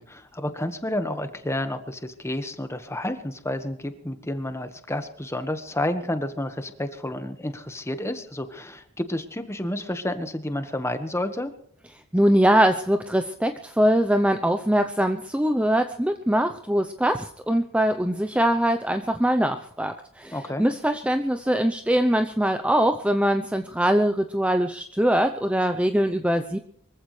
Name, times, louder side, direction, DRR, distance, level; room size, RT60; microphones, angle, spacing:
voice 1, 0.0-11.5 20.3-20.6, left 1 dB, 15° left, 8 dB, 1.4 m, -30 dB
voice 2, 12.1-26.6, right 1 dB, 5° right, 7 dB, 0.7 m, -22 dB
24.5 x 15.0 x 3.3 m, 0.65 s
head